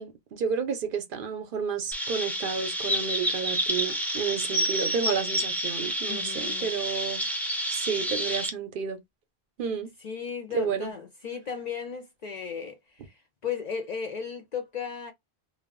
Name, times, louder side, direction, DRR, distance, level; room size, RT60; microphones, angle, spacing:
voice 1, 0.0-7.2 7.7-9.0 9.6-9.9 10.5-10.9, right 6 dB, 65° right, 0.7 m, -31 dB
Chirp tweet, 1.9-8.5, equal, ahead, 0.4 m, -29 dB
voice 2, 6.1-6.7 10.0-15.1, left 6 dB, 55° left, 0.5 m, -36 dB
2.2 x 2.0 x 3.5 m
omnidirectional pair, 1.1 m